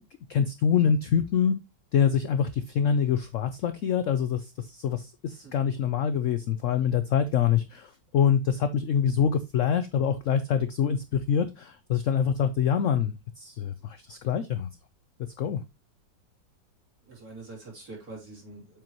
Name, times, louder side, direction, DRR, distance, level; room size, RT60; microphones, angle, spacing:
voice 1, 0.3-1.6 1.9-14.7 15.4-15.6, left 8 dB, 85° left, 11 dB, 0.6 m, -25 dB
voice 2, 17.0-18.8, right 3 dB, 50° right, -3 dB, 3.5 m, -45 dB
7.6 x 5.3 x 2.9 m, 0.23 s
omnidirectional pair, 2.0 m